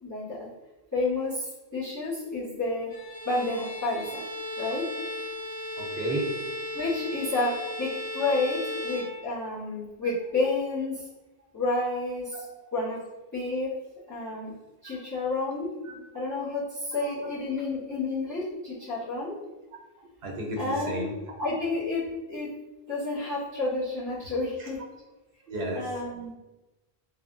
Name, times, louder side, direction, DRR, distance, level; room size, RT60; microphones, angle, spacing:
voice 1, 0.0-0.4 0.9-2.9 3.2-4.2 4.6-4.9 6.7-11.0 11.5-12.4 12.7-13.0 13.3-13.7 14.1-14.5 14.8-15.7 16.1-19.4 20.6-21.1 21.4-22.5 22.9-24.8 25.7-26.3, left 2 dB, 20° left, -9 dB, 0.8 m, -30 dB
Bowed string instrument, 2.9-9.7, left 1 dB, 40° left, 1.6 m, -36 dB
voice 2, 5.8-6.3 12.3-12.5 15.9-16.0 17.0-17.1 20.2-21.1 25.5-25.8, right 1 dB, 80° right, 0 dB, 0.9 m, -32 dB
3.0 x 2.2 x 2.5 m, 1.1 s
omnidirectional pair, 1.0 m